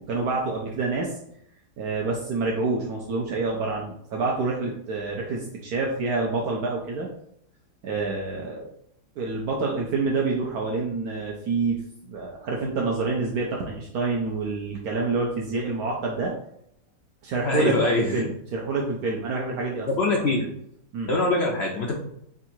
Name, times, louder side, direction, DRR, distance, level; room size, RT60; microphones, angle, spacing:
voice 1, 0.1-1.2 1.8-7.1 7.8-8.7 9.2-16.3 17.2-19.9 20.2-20.5 20.9-21.1, right 3 dB, 70° right, -2 dB, 1.1 m, -27 dB
voice 2, 17.4-18.1 19.9-20.4 21.1-21.9, left 2 dB, 70° left, -1 dB, 0.6 m, -23 dB
3.7 x 2.5 x 4.3 m, 0.74 s
omnidirectional pair, 1.8 m